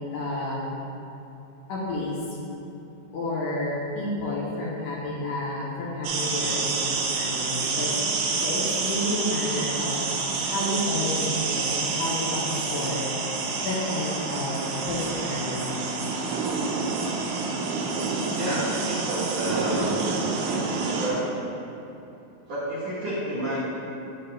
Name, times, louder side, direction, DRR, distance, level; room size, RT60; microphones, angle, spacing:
voice 1, 0.1-0.8 1.7-2.2 3.1-13.1 13.6-15.8, left 1 dB, 75° left, -6 dB, 2.4 m, -30 dB
sound 1, 6.0-21.1, right 4 dB, 75° right, 2.0 m, -28 dB
voice 2, 18.3-20.0 21.0-21.2 22.5-23.6, right 1 dB, 60° right, -11 dB, 1.8 m, -30 dB
7.7 x 6.7 x 2.3 m, 2.9 s
omnidirectional pair, 4.1 m